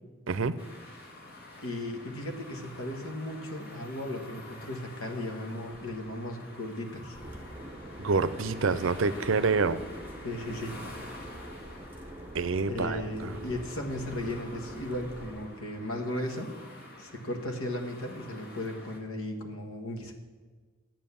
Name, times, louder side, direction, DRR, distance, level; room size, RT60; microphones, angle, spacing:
sound 1, 0.6-19.0, left 1 dB, 45° left, 1.7 m, -48 dB
voice 1, 1.6-7.2 10.2-10.8 12.7-16.5 17.0-20.1, left 1 dB, 85° left, 4 dB, 1.4 m, -36 dB
sound 2, 7.1-15.5, right 1 dB, 10° right, 0.9 m, -45 dB
voice 2, 8.0-9.8 12.3-13.3, right 4 dB, 65° right, 14 dB, 0.5 m, -27 dB
9.6 x 7.5 x 7.0 m, 1.5 s
head